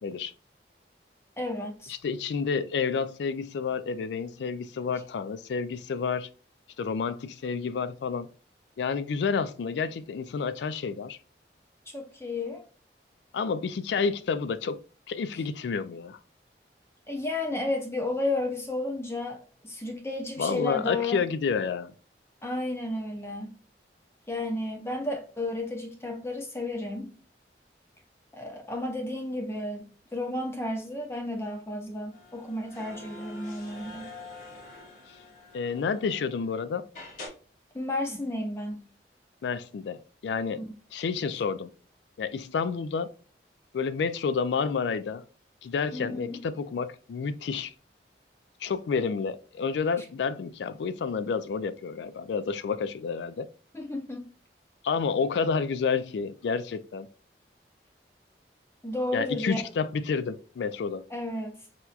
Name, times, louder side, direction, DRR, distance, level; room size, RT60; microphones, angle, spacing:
voice 1, 0.0-0.3 1.9-6.3 6.8-8.3 8.8-11.2 13.3-14.8 15.1-16.2 20.4-21.9 35.5-36.9 39.4-40.6 40.9-41.7 42.2-43.1 43.7-45.2 45.6-47.7 48.6-53.5 54.8-57.1 59.1-61.0, left 5 dB, 80° left, 0.3 m, -30 dB
voice 2, 1.4-1.9 11.9-12.7 17.1-21.2 22.4-23.5 24.3-27.1 28.3-34.1 37.7-38.8 40.5-40.6 45.9-46.4 53.7-54.3 58.8-59.6 61.1-61.6, left 2 dB, 15° left, 0.5 m, -32 dB
sound 1, 32.1-36.5 36.9-37.3, left 2 dB, 50° left, 1.0 m, -45 dB
4.3 x 2.3 x 2.4 m
head